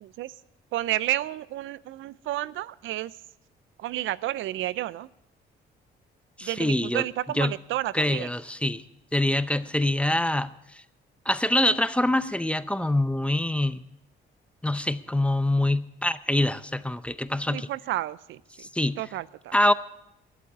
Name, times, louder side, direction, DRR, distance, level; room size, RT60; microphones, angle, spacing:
voice 1, 0.0-0.3 0.7-3.1 3.8-5.1 6.4-8.3 17.5-18.4 19.0-19.5, right 14 dB, 80° right, 19 dB, 0.4 m, -31 dB
voice 2, 6.4-7.0 7.4-7.5 7.9-8.8 9.1-10.5 11.3-13.8 14.6-17.7 18.6-19.0 19.5-19.7, left 1 dB, 5° left, 14 dB, 0.5 m, -25 dB
11.0 x 8.2 x 8.9 m, 0.85 s
cardioid pair, 90°, 20 cm